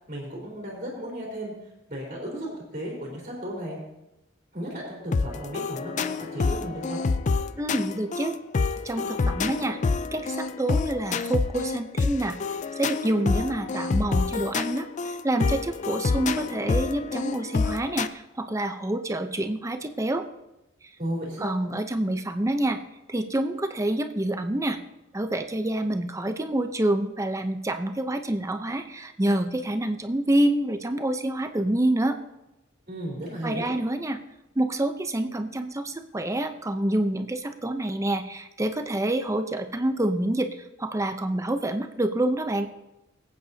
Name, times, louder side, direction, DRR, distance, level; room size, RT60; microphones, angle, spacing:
voice 1, 0.1-1.5 1.9-3.8 4.5-7.0 21.0-21.6 32.9-33.7, equal, 35° right, -5 dB, 3.6 m, -34 dB
sound 1, 5.1-18.1, left 4 dB, 40° left, 0.4 m, -27 dB
voice 2, 7.6-8.3 8.8-9.8 10.1-12.4 12.8-20.2 21.4-22.8 23.1-24.8 25.1-32.2 33.4-34.2 34.6-42.7, right 1 dB, 15° right, 7 dB, 0.7 m, -27 dB
24.0 x 8.8 x 2.8 m, 0.93 s
head